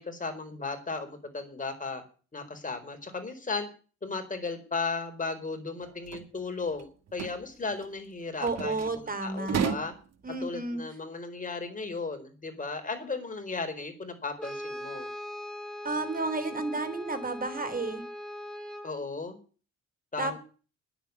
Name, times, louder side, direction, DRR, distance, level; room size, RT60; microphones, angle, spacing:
voice 1, 0.0-2.0 2.3-3.7 4.0-9.9 10.4-15.1 18.8-19.4 20.1-20.4, left 4 dB, 25° left, 6 dB, 4.5 m, -35 dB
sound 1, 5.8-6.2 6.7-6.8 7.1-7.4 7.6-7.9 8.5-9.0 9.4-10.0, right 7 dB, 60° right, 1.5 m, -32 dB
voice 2, 8.4-9.6 10.2-10.8 15.8-18.0 20.2-20.4, right 3 dB, 30° right, 10 dB, 3.4 m, -32 dB
Brass instrument, 14.4-19.0, left 1 dB, ahead, 3.0 m, -40 dB
10.5 x 8.3 x 9.6 m, 0.37 s
cardioid pair, 90°, 30 cm